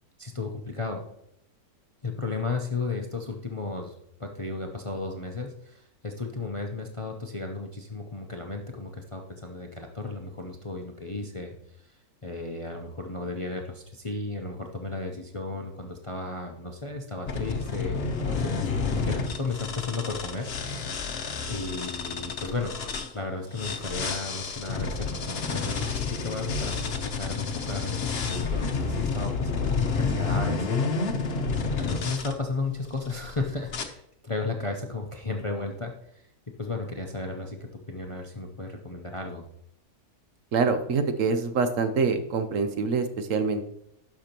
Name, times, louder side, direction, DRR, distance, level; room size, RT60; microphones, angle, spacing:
voice 1, 0.2-1.0 2.0-20.5 21.5-22.7 23.1-30.9 31.8-36.3 36.6-39.4, left 3 dB, 30° left, 3 dB, 0.6 m, -34 dB
sound 1, 17.3-23.1 23.5-32.3 33.0-33.3 33.7-33.8, left 4 dB, 50° left, 0.9 m, -30 dB
voice 2, 40.5-43.7, right 4 dB, 65° right, 9 dB, 1.1 m, -25 dB
12.0 x 5.9 x 2.9 m, 0.74 s
omnidirectional pair, 1.5 m